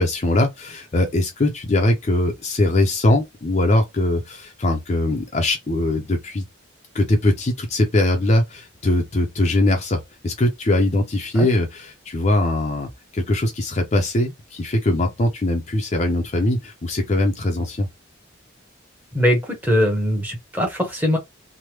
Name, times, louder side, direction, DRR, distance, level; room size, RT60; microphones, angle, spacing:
voice 1, 0.0-6.4 6.9-12.9 13.1-17.9, left 1 dB, 35° left, 0.5 m, -21 dB
voice 2, 19.1-21.2, equal, 10° right, 0.9 m, -21 dB
3.2 x 2.1 x 2.9 m
head